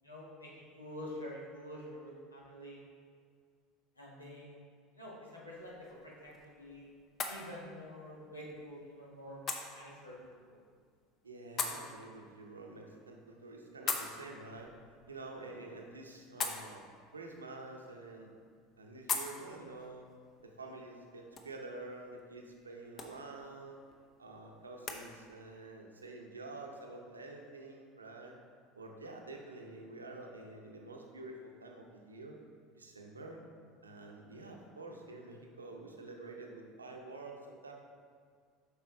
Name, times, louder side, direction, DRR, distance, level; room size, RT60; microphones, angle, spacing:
voice 1, 0.0-2.8 4.0-4.6 4.9-6.9 7.3-9.4 9.7-10.2 10.5-10.6, left 1 dB, 90° left, -5 dB, 1.4 m, -47 dB
sound 1, 5.5-25.0, left 5 dB, 40° left, 0.8 m, -45 dB
voice 2, 11.2-14.7 15.1-16.8 17.1-18.3 18.8-20.1 20.4-23.8 24.2-28.3 28.7-32.4 32.8-33.4 33.8-37.7, right 2 dB, 85° right, 1 dB, 0.7 m, -48 dB
8.0 x 5.5 x 3.1 m, 2.1 s
figure-of-eight pair, 70°, 0 cm